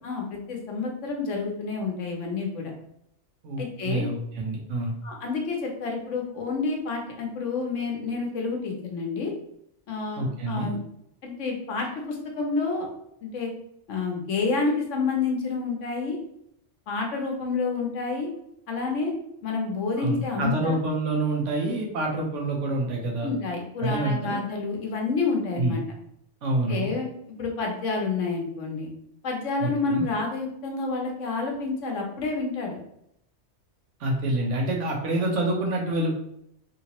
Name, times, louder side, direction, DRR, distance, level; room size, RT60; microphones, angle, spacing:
voice 1, 0.0-2.7 3.6-4.1 5.0-9.3 9.9-10.8 11.2-12.9 13.2-13.5 13.9-16.2 16.9-18.3 18.7-19.1 19.4-20.8 23.2-25.8 26.7-27.1 27.4-28.9 29.2-32.8, left 4 dB, 80° left, 1 dB, 1.2 m, -29 dB
voice 2, 3.4-4.9 10.2-10.8 20.0-23.3 23.8-24.4 25.6-25.7 26.4-26.9 29.6-30.0 34.0-36.2, right 1 dB, 80° right, 1 dB, 1.1 m, -27 dB
3.4 x 2.8 x 2.9 m, 0.75 s
omnidirectional pair, 1.2 m